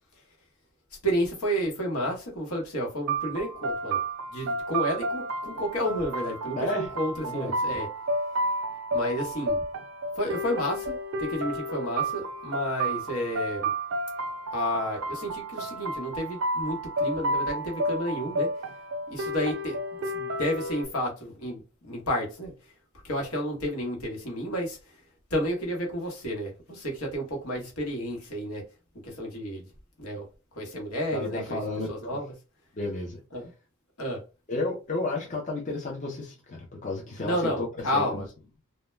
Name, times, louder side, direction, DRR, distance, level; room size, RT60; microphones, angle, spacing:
voice 1, 1.0-4.0 4.3-7.9 8.9-9.6 10.2-13.7 14.5-18.5 19.1-19.8 20.1-22.5 23.0-24.8 25.3-28.6 29.0-29.6 30.0-30.2 30.6-31.6 31.9-32.3 33.3-33.5 34.0-34.2 37.2-38.3, equal, 75° left, 1.0 m, -31 dB
sound 1, 3.1-20.8, right 1 dB, 65° right, 0.4 m, -31 dB
voice 2, 6.5-6.9 7.2-7.6 31.1-32.2 32.7-33.2 34.5-38.2, left 2 dB, 35° left, 0.5 m, -32 dB
2.1 x 2.1 x 3.1 m
head